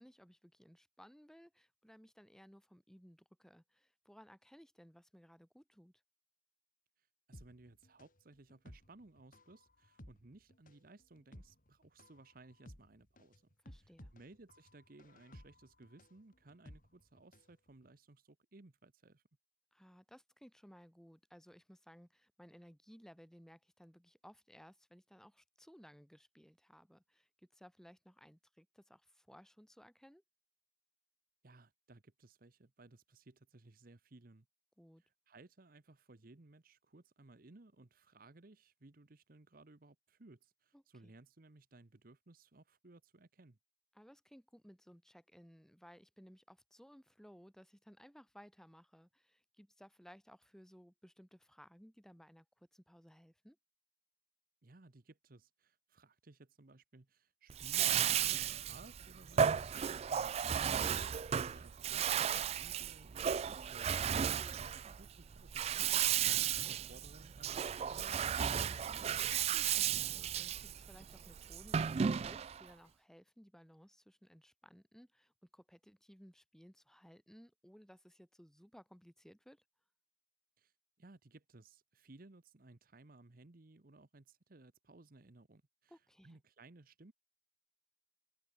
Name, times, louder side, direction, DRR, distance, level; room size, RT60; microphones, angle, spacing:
voice 1, 0.0-5.9 13.6-14.1 19.7-30.2 34.8-35.0 40.7-41.1 43.9-53.6 64.3-64.6 68.8-79.6 85.9-86.4, equal, 5° left, 4.8 m, -60 dB
voice 2, 7.0-13.4 13.7-19.2 31.4-34.5 35.0-43.6 54.6-64.0 64.6-68.3 80.6-80.7 81.0-87.1, right 2 dB, 50° right, 1.0 m, -60 dB
sound 1, 7.3-17.5 17.8-17.9, left 1 dB, 50° left, 4.0 m, -58 dB
Bathtub (filling or washing), 57.5-72.6, right 8 dB, 35° right, 0.3 m, -34 dB
open air
head